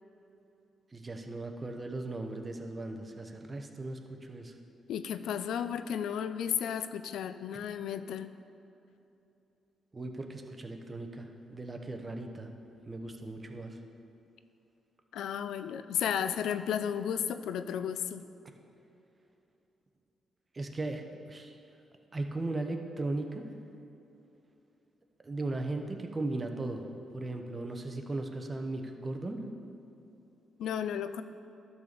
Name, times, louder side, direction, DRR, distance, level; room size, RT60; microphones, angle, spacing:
voice 1, 0.9-4.5 9.9-12.5 12.9-13.8 20.5-21.6 22.1-23.4 25.2-26.8 27.1-29.4, right 2 dB, 25° right, 4 dB, 0.9 m, -37 dB
voice 2, 4.9-8.3 15.1-18.3 30.6-31.2, left 8 dB, 85° left, 11 dB, 0.3 m, -33 dB
12.0 x 4.1 x 6.7 m, 2.8 s
cardioid pair, 95°, 0 cm